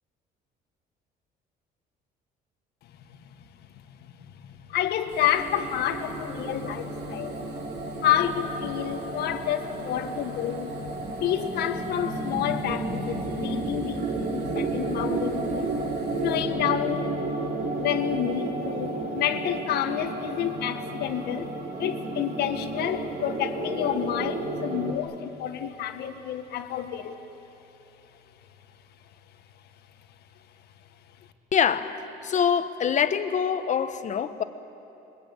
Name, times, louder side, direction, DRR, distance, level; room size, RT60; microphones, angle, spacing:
voice 1, 4.7-7.4 8.0-10.8 11.2-15.7 16.2-17.1 17.8-21.5 21.8-27.2, left 10 dB, 75° left, 8 dB, 1.7 m, -29 dB
Fire, 5.1-16.4, right 2 dB, 85° right, 4.7 m, -48 dB
sound 1, 5.3-24.9, right 2 dB, 65° right, 3.3 m, -32 dB
voice 2, 31.5-31.9 32.2-34.4, left 7 dB, 45° left, 11 dB, 1.2 m, -24 dB
26.5 x 22.5 x 8.8 m, 3.0 s
cardioid pair, 110°, 17 cm